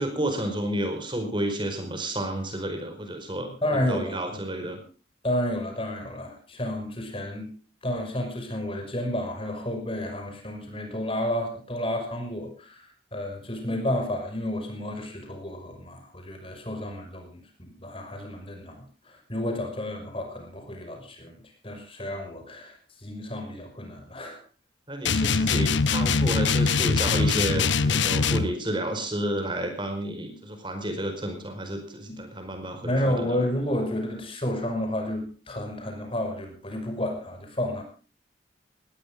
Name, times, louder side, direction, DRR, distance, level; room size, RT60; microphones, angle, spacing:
voice 1, 0.0-4.8 24.9-33.4, right 1 dB, 25° right, 6 dB, 4.9 m, -31 dB
voice 2, 3.6-4.4 5.2-7.5 7.8-21.4 21.6-24.4 32.1-32.2 32.8-37.8, left 1 dB, 30° left, 4 dB, 6.1 m, -31 dB
sound 1, 25.1-28.5, left 4 dB, 75° left, 1.0 m, -23 dB
19.0 x 18.5 x 3.8 m, 0.35 s
head